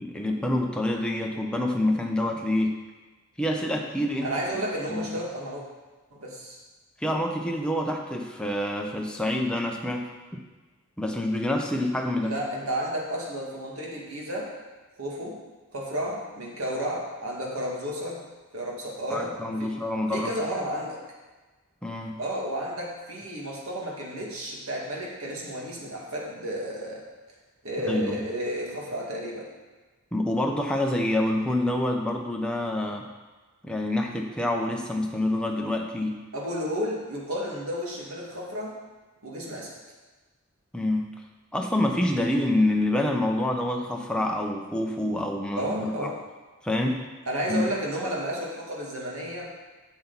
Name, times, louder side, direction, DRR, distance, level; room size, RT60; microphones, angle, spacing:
voice 1, 0.0-2.8 3.4-4.3 4.9-5.1 7.0-10.1 11.0-12.3 19.1-20.4 21.8-22.2 27.9-28.2 30.1-33.1 33.6-36.2 40.7-41.1 41.5-46.1 46.6-47.1 47.5-47.6, left 1 dB, 5° left, 1 dB, 0.8 m, -27 dB
voice 2, 4.2-5.6 6.1-6.6 12.2-14.5 15.0-15.4 15.7-18.2 18.5-19.7 20.1-21.0 22.2-27.0 27.6-29.5 36.3-38.8 39.2-39.7 45.6-46.2 47.3-49.5, equal, 80° right, -3 dB, 2.1 m, -32 dB
10.5 x 6.9 x 4.1 m, 1.3 s
head